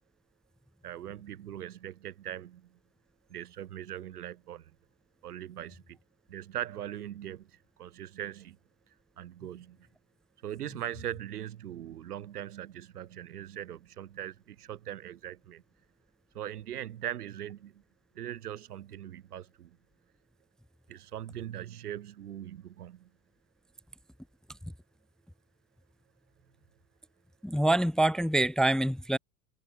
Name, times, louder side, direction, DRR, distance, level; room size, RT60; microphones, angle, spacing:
voice 1, 0.8-2.7 3.3-4.7 5.2-6.0 6.3-7.5 7.8-8.6 9.2-9.8 10.4-15.6 16.3-17.8 18.1-19.8 20.9-23.1, right 11 dB, 85° right, 1.4 m, -40 dB
voice 2, 27.4-29.2, right 1 dB, ahead, 0.5 m, -25 dB
hypercardioid pair, 95°, 45 cm